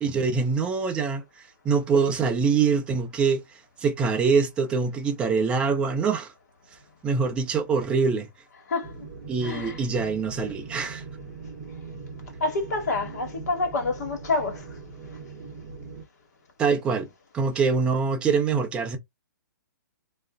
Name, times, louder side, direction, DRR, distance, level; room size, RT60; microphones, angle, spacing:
voice 1, 0.0-1.2 1.6-3.4 3.8-6.3 7.0-8.3 9.3-11.0 16.6-17.1 17.3-19.0, right 5 dB, 10° right, 0.4 m, -24 dB
voice 2, 8.7-9.0 9.4-9.8 12.4-14.8, left 3 dB, 50° left, 1.2 m, -28 dB
sound 1, 8.8-16.0, right 4 dB, 35° right, 0.8 m, -41 dB
2.4 x 2.0 x 3.6 m
hypercardioid pair, 160°, 11 cm